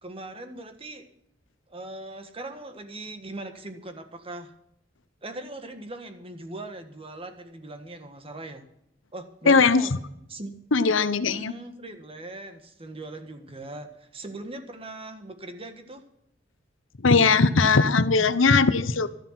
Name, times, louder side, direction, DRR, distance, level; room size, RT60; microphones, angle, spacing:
voice 1, 0.0-1.1 1.7-4.5 5.2-8.6 9.1-9.9 10.3-10.5 11.3-16.0, right 2 dB, 30° right, 7 dB, 1.5 m, -40 dB
voice 2, 9.5-9.8 10.7-11.5 17.0-19.1, left 4 dB, 80° left, 13 dB, 0.9 m, -19 dB
12.5 x 11.5 x 5.9 m, 0.77 s
head